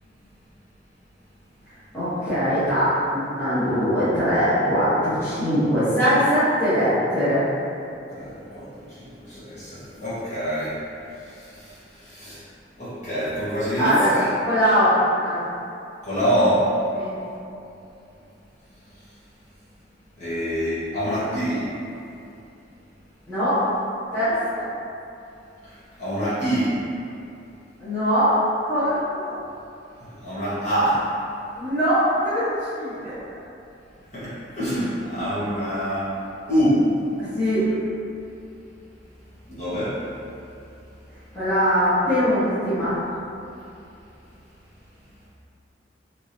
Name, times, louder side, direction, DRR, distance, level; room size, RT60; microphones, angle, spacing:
voice 1, 1.7-7.4 13.8-14.1 14.4-15.4 16.9-17.1 23.3-23.6 24.1-24.6 27.8-28.4 28.6-29.3 31.6-33.2 37.3-37.7 41.3-43.0, equal, 15° left, -17 dB, 1.1 m, -21 dB
voice 2, 7.8-10.8 11.1-12.4 12.8-14.3 16.0-16.7 20.2-21.7 25.6-26.8 30.0-31.1 34.1-36.1 36.5-36.9 39.5-40.0, equal, 40° left, -13 dB, 1.4 m, -25 dB
3.4 x 3.2 x 2.8 m, 2.7 s
head